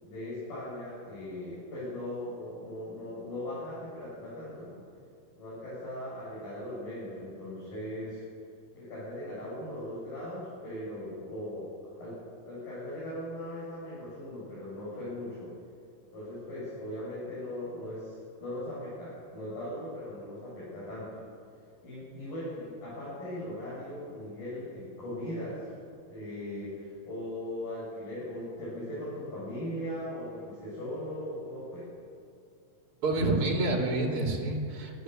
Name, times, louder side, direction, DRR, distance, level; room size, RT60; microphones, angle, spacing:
voice 1, 0.0-4.8 5.4-8.2 8.7-11.7 12.0-12.2 12.5-15.5 16.1-21.2 21.8-25.6 26.1-31.8, left 1 dB, 80° left, -9 dB, 9.2 m, -39 dB
voice 2, 33.0-35.0, right 2 dB, 40° right, 1 dB, 3.6 m, -28 dB
23.0 x 14.5 x 7.9 m, 2.5 s
omnidirectional pair, 4.0 m